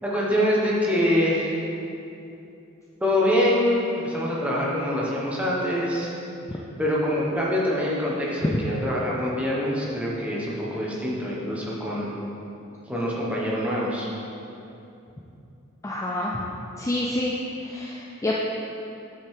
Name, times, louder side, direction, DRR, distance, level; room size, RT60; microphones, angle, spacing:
voice 1, 0.0-1.5 3.0-6.1 6.8-12.1 12.9-14.1, left 1 dB, 5° right, -6 dB, 1.2 m, -25 dB
voice 2, 15.8-16.5 16.8-17.3 17.6-18.3, left 1 dB, 15° left, -3 dB, 0.4 m, -28 dB
8.3 x 5.4 x 3.7 m, 2.7 s
head